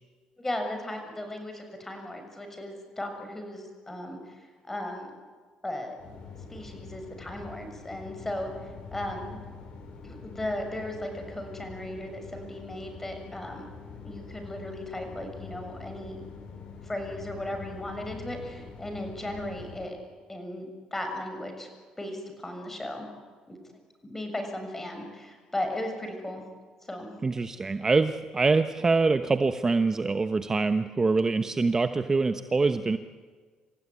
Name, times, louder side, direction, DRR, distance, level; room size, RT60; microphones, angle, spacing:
voice 1, 0.4-5.2 5.6-6.0 6.5-8.5 8.9-9.4 10.0-13.7 14.0-16.2 16.8-20.0 20.3-21.7 22.0-23.1 23.5-23.6 24.0-26.4 26.8-27.1, left 1 dB, 15° left, 5 dB, 6.9 m, -36 dB
sound 1, 6.0-19.8, left 4 dB, 55° left, 7.4 m, -44 dB
voice 2, 27.2-33.0, right 3 dB, 25° right, 9 dB, 1.1 m, -24 dB
28.0 x 15.5 x 9.9 m, 1.5 s
supercardioid pair, 85°, 2 cm